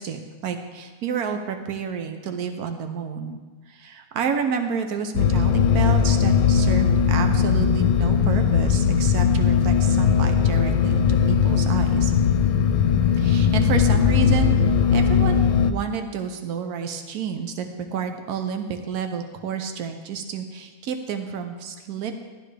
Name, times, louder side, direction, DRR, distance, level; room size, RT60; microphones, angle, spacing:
voice 1, 0.0-3.4 3.7-12.1 13.2-14.6 14.9-22.2, right 6 dB, 85° right, 6 dB, 1.3 m, -30 dB
sound 1, 5.1-15.7, left 7 dB, 85° left, 1.1 m, -19 dB
12.0 x 10.0 x 3.3 m, 1.3 s
omnidirectional pair, 1.5 m